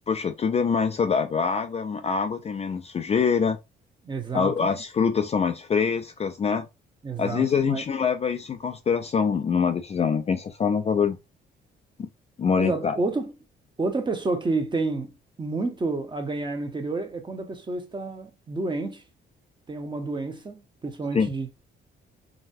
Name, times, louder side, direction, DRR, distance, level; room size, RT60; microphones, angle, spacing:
voice 1, 0.1-3.6 4.3-6.7 7.2-11.2 12.0-12.1 12.4-13.0 21.1-21.3, left 6 dB, 30° left, 0.4 m, -24 dB
voice 2, 4.0-4.7 7.0-7.8 12.6-13.3 13.8-15.1 15.4-19.0 19.7-21.5, right 3 dB, 25° right, 0.8 m, -29 dB
4.0 x 2.1 x 2.6 m
cardioid pair, 90°, 20 cm